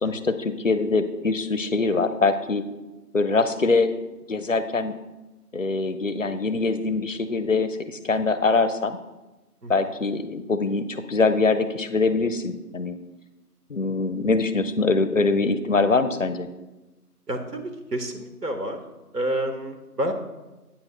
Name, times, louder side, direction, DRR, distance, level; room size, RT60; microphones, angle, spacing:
voice 1, 0.0-2.6 3.1-3.9 4.3-5.0 5.5-9.0 9.7-13.0 13.7-16.5, left 3 dB, 55° left, 12 dB, 0.5 m, -23 dB
voice 2, 17.3-17.6 17.9-18.8 19.1-20.1, right 1 dB, 85° right, 5 dB, 1.1 m, -28 dB
8.7 x 3.0 x 5.7 m, 1.1 s
figure-of-eight pair, 170°, 47 cm